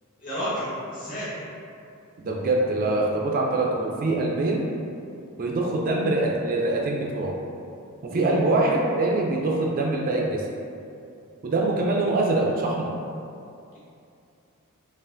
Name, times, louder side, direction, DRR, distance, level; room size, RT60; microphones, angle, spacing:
voice 1, 0.2-1.3 8.1-8.3, equal, 40° left, -10 dB, 1.4 m, -31 dB
voice 2, 2.2-4.6 5.4-7.4 8.0-10.4 11.4-12.9, right 2 dB, 40° right, -1 dB, 0.3 m, -24 dB
5.4 x 2.4 x 2.5 m, 2.6 s
head